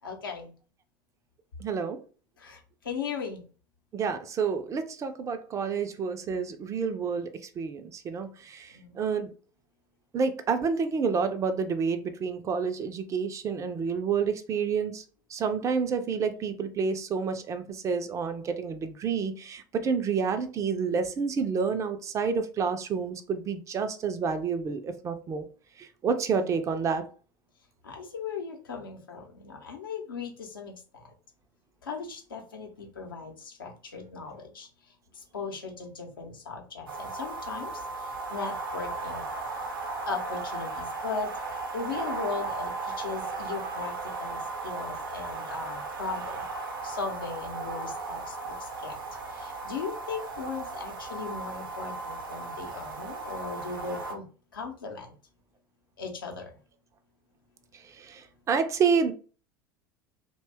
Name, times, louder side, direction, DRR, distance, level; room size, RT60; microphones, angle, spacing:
voice 1, 0.0-0.5 2.4-2.6 2.8-3.4 8.7-9.0 27.8-31.0 31.8-34.7 35.2-39.2 40.1-41.3 41.7-43.9 44.2-46.4 46.8-49.0 49.3-54.2 54.5-55.1 56.0-56.5, left 5 dB, 75° left, 0.7 m, -37 dB
voice 2, 1.6-2.0 3.9-9.3 10.1-15.0 15.3-25.5 25.8-27.1 58.0-59.1, right 5 dB, 25° right, 0.4 m, -29 dB
sound 1, 36.9-54.1, right 3 dB, 70° right, 0.6 m, -36 dB
2.6 x 2.2 x 3.2 m
figure-of-eight pair, 75°, 12 cm